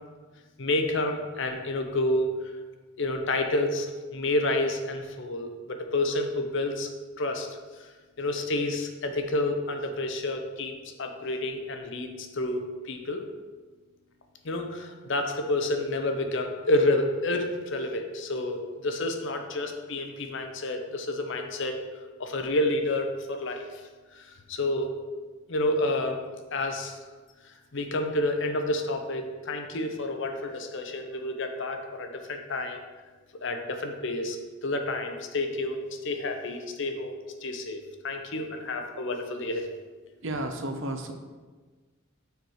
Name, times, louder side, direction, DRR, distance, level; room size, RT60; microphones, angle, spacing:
voice 1, 0.6-2.3 3.0-6.9 7.2-7.5 8.2-13.3 14.4-21.8 22.2-23.7 24.1-24.9 25.5-26.2 26.5-27.0 27.7-32.8 33.4-34.4 34.6-39.7, left 2 dB, 60° left, 5 dB, 0.7 m, -29 dB
voice 2, 40.2-41.1, right 1 dB, 60° right, 5 dB, 0.7 m, -32 dB
6.6 x 4.8 x 4.7 m, 1.3 s
head